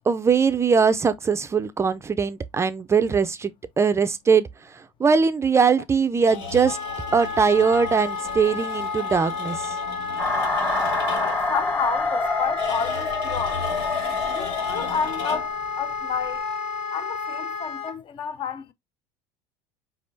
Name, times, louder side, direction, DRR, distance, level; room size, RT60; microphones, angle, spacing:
voice 1, 0.0-6.8 7.1-9.8, right 5 dB, 20° right, 0.4 m, -21 dB
sound 1, 6.2-11.5 12.6-15.7, left 4 dB, 85° left, 2.8 m, -37 dB
Wind instrument woodwind instrument, 6.6-18.0, left 5 dB, 60° left, 1.2 m, -31 dB
sound 2, 10.2-15.2, left 2 dB, 15° left, 1.3 m, -27 dB
voice 2, 11.2-13.7 14.3-16.4 16.9-18.7, left 6 dB, 35° left, 0.5 m, -30 dB
4.7 x 3.5 x 2.6 m
supercardioid pair, 105°, 14 cm